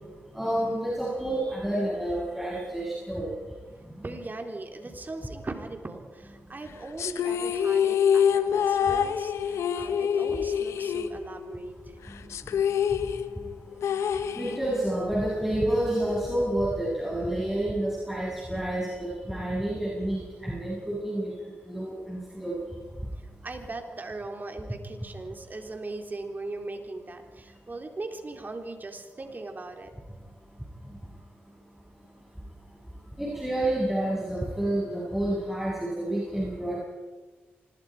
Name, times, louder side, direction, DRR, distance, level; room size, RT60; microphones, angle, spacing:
voice 1, 0.4-3.3 4.0-4.1 14.4-21.3 21.7-22.6 33.2-36.8, right 1 dB, 5° right, -5 dB, 7.1 m, -29 dB
voice 2, 4.0-12.0 23.2-29.9, right 2 dB, 40° right, 4 dB, 3.8 m, -39 dB
sound 1, 7.0-11.7 11.9-12.0 12.3-15.0, left 8 dB, 85° left, 0.9 m, -26 dB
25.0 x 21.0 x 5.1 m, 1.3 s
supercardioid pair, 50°, 5 cm